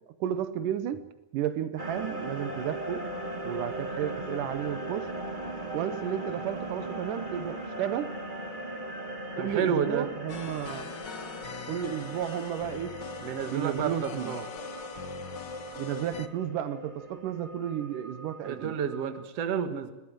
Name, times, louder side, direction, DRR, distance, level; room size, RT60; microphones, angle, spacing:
voice 1, 0.2-3.1 3.4-5.1 5.7-8.2 9.4-10.9 11.7-13.0 13.5-14.3 15.8-18.7, right 10 dB, 80° right, 2.5 m, -33 dB
sound 1, 1.8-19.2, right 1 dB, 15° right, 2.2 m, -39 dB
voice 2, 9.4-10.1 13.2-14.5 18.4-19.9, right 7 dB, 55° right, 2.5 m, -30 dB
sound 2, 10.3-16.3, left 7 dB, 60° left, 1.2 m, -42 dB
21.5 x 19.5 x 7.7 m
omnidirectional pair, 3.7 m